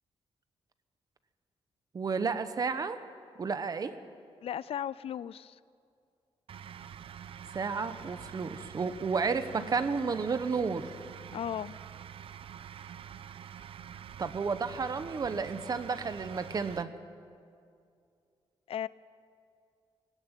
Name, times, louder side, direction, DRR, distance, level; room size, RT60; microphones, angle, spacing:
voice 1, 1.9-3.0 3.4-4.0 7.5-10.9 14.2-16.9, right 5 dB, 40° right, 11 dB, 1.1 m, -32 dB
voice 2, 4.4-5.6 11.3-11.7 18.7-18.9, left 10 dB, 70° left, 19 dB, 0.4 m, -35 dB
sound 1, 6.5-16.8, right 9 dB, 60° right, 0.6 m, -46 dB
19.5 x 16.5 x 9.1 m, 2.3 s
wide cardioid pair, 150°, 10 cm